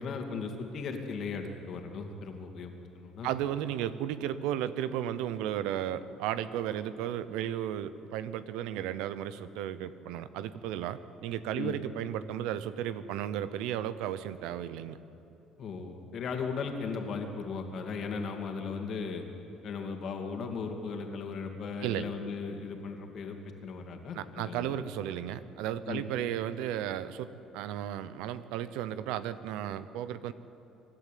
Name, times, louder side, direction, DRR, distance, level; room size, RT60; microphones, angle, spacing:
voice 1, 0.0-3.3 11.6-11.8 15.6-19.2 19.6-24.8 25.9-26.0, left 5 dB, 55° left, 3 dB, 2.5 m, -37 dB
voice 2, 3.2-15.0 21.8-22.1 24.1-30.3, right 11 dB, 85° right, 14 dB, 0.8 m, -34 dB
24.5 x 11.5 x 9.2 m, 2.9 s
cardioid pair, 110°, 0 cm